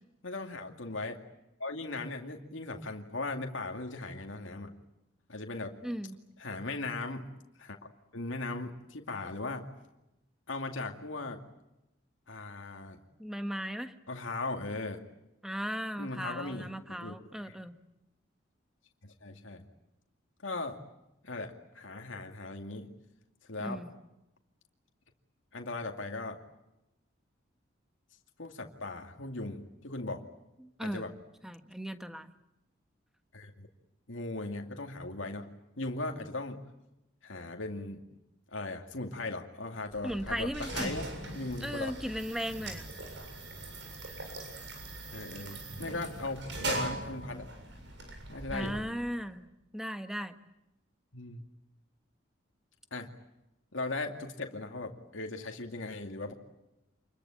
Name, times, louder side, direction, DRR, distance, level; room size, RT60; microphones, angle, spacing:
voice 1, 0.2-1.2 1.6-4.7 5.3-5.7 6.4-7.3 7.6-9.7 10.5-11.4 12.3-13.0 14.1-15.0 16.0-17.1 17.4-17.6 19.0-19.6 20.4-20.8 21.2-22.9 23.5-23.8 25.5-26.4 28.4-30.2 30.8-31.1 33.3-33.7 34.1-36.6 37.2-38.0 38.5-41.1 41.3-41.9 45.1-47.5 48.3-48.9 51.1-51.4 52.9-53.1 53.7-56.3, left 2 dB, 80° left, 3 dB, 2.4 m, -38 dB
voice 2, 5.8-6.2 13.2-13.9 15.4-17.8 23.6-23.9 30.6-31.1 31.4-32.3 40.0-41.0 41.6-42.9 48.5-49.5 49.7-50.3, equal, 5° right, 8 dB, 1.4 m, -37 dB
sound 1, 39.9-49.2, right 2 dB, 65° right, 7.4 m, -40 dB
28.0 x 22.0 x 8.7 m, 0.92 s
head